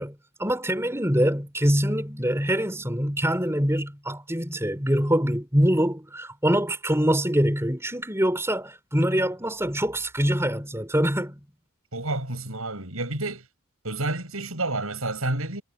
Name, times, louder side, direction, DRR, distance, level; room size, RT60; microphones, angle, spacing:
voice 1, 0.0-11.4, equal, 10° right, 4.6 m, -24 dB
voice 2, 11.9-13.5 13.8-15.6, right 2 dB, 75° right, 7.3 m, -29 dB
head